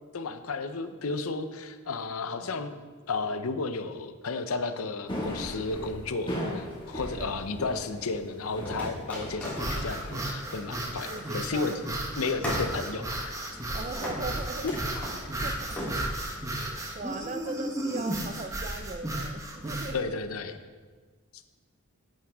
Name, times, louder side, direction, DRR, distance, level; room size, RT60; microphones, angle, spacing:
voice 1, 0.1-2.8 3.1-11.7 12.2-13.3 14.6-14.8 15.4-15.5 19.9-20.6, left 3 dB, 80° left, 10 dB, 0.7 m, -33 dB
sound 1, 5.1-17.3, equal, 25° left, 1.9 m, -41 dB
sound 2, 6.7-7.5 8.7-11.6 11.9-12.0 12.4-13.7 14.0-14.3 14.7-15.2 15.8-15.9, equal, 5° left, 3.1 m, -38 dB
sound 3, 9.5-20.0, right 1 dB, 15° right, 1.0 m, -34 dB
voice 2, 10.8-11.8 12.2-12.4 13.7-16.0 16.9-20.1, right 2 dB, 35° right, 8 dB, 0.6 m, -39 dB
11.0 x 9.0 x 3.6 m, 1.4 s
head